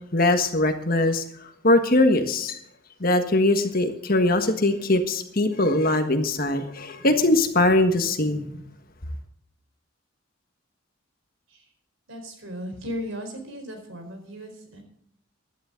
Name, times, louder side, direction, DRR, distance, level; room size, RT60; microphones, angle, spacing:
voice 1, 0.1-1.2 1.6-2.6 3.0-8.5, left 2 dB, 45° left, 7 dB, 1.5 m, -21 dB
voice 2, 12.1-14.9, equal, 65° right, 5 dB, 4.5 m, -36 dB
16.0 x 12.0 x 3.9 m, 0.70 s
head